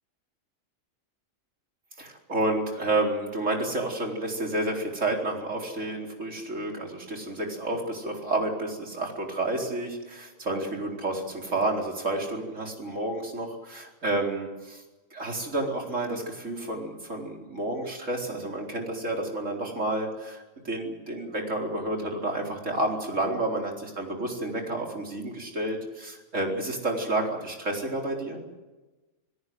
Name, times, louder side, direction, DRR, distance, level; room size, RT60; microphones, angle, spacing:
voice 1, 2.0-14.8 15.1-28.4, right 2 dB, 70° right, 1 dB, 4.6 m, -30 dB
27.0 x 17.5 x 7.9 m, 1.1 s
omnidirectional pair, 1.3 m